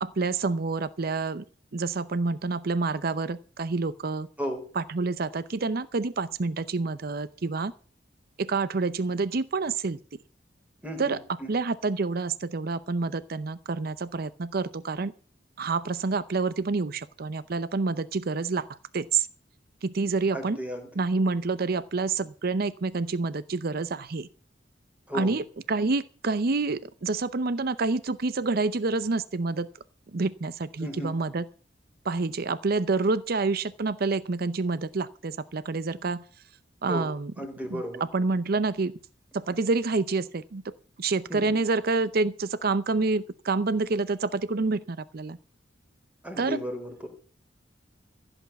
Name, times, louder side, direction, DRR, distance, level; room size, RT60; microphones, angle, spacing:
voice 1, 0.0-1.4 1.7-4.3 4.8-7.7 8.4-10.0 11.0-11.2 11.5-15.1 15.6-18.7 18.9-19.3 19.8-20.6 21.0-24.3 25.1-29.7 30.1-31.4 32.1-36.2 36.8-37.3 37.7-37.8 38.1-38.9 39.3-40.7 41.0-45.4 46.4-46.6, right 3 dB, 55° right, 0.6 m, -28 dB
voice 2, 10.8-11.5 20.3-21.0 25.1-25.4 30.8-31.2 36.9-38.0 41.3-41.6 46.2-47.1, equal, 10° right, 3.5 m, -35 dB
15.5 x 8.0 x 7.0 m
head